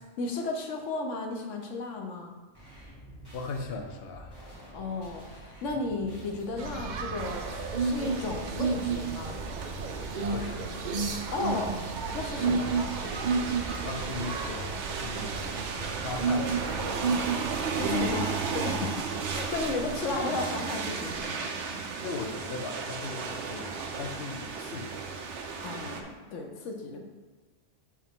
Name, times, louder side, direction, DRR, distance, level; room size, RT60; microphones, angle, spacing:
voice 1, 0.2-2.3 4.7-9.4 11.3-11.7 12.1-12.9 17.8-19.0 19.3-21.4 25.6-27.0, left 3 dB, 90° left, 3 dB, 1.1 m, -34 dB
sound 1, 2.5-13.9, right 1 dB, 20° left, 1.9 m, -48 dB
voice 2, 3.3-4.3 10.3-10.8 13.8-16.7 17.1-17.2 22.0-25.0, left 4 dB, 60° left, 3 dB, 0.9 m, -39 dB
sound 2, 6.6-18.3, right 4 dB, 55° right, 0.6 m, -32 dB
sound 3, 7.2-26.0, right 5 dB, 75° right, 1.0 m, -35 dB
6.9 x 4.7 x 3.6 m, 1.2 s
omnidirectional pair, 1.2 m